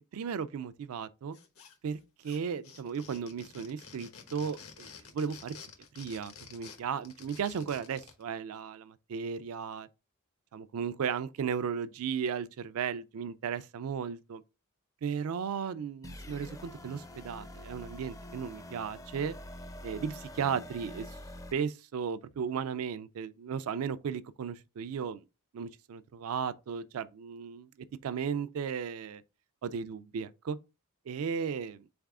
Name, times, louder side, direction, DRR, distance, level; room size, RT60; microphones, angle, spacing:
voice 1, 0.1-1.4 1.8-5.5 6.0-9.9 10.5-14.4 15.0-19.3 19.8-21.1 21.5-25.2 25.5-27.7 28.0-29.2 29.6-30.6 31.1-31.8, right 7 dB, 75° right, 0.4 m, -35 dB
sound 1, 1.3-2.0 2.2-8.2, left 6 dB, 75° left, 1.0 m, -51 dB
sound 2, 16.0-21.5, left 1 dB, 15° left, 0.4 m, -46 dB
4.0 x 3.5 x 3.6 m
head